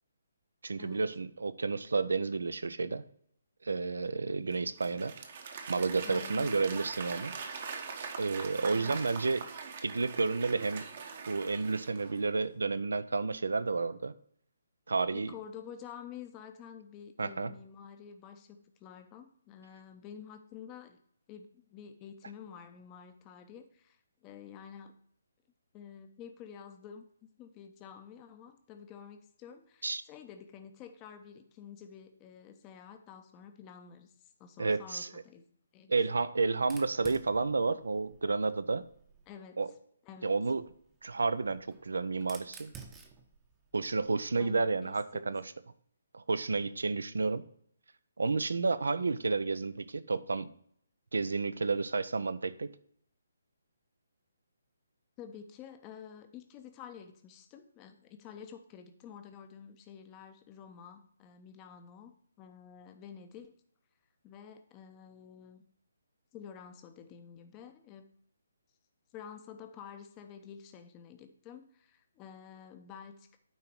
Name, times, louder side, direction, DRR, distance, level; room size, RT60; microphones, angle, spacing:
voice 1, 0.6-3.0 3.6-5.1 5.7-7.3 8.2-9.5 9.8-10.9 11.3-14.1 14.9-15.3 17.2-17.5 29.8-30.0 34.6-35.1 35.9-38.8 39.6-39.7 40.2-40.6 41.0-42.7 43.7-45.4 46.1-47.4 48.2-50.5 51.1-52.7, right 4 dB, 70° right, 15 dB, 0.5 m, -31 dB
Applause / Crowd, 4.5-12.3, right 5 dB, 45° right, 1.1 m, -42 dB
voice 2, 6.0-6.8 8.7-9.0 15.1-21.0 21.3-24.9 25.7-27.1 27.4-35.4 35.7-36.2 39.3-39.6 40.0-40.3 44.4-45.4 55.2-63.5 64.2-65.6 66.3-68.1 69.1-73.4, left 8 dB, 25° left, 7 dB, 0.7 m, -50 dB
Fire, 36.6-39.3 40.5-44.7, right 5 dB, 15° right, 0.8 m, -54 dB
9.4 x 3.9 x 4.4 m, 0.64 s
figure-of-eight pair, 140°, 0 cm